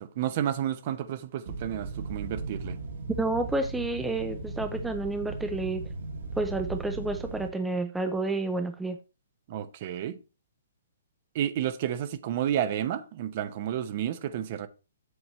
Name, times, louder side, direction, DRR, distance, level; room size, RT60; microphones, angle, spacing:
voice 1, 0.0-2.8 9.5-10.2 11.3-14.7, right 10 dB, 40° right, 0.8 m, -31 dB
sound 1, 1.5-7.5, right 3 dB, 65° right, 2.0 m, -37 dB
voice 2, 3.2-5.8 6.4-9.0, right 2 dB, 5° right, 0.6 m, -30 dB
7.9 x 7.1 x 3.2 m
hypercardioid pair, 150°, 0 cm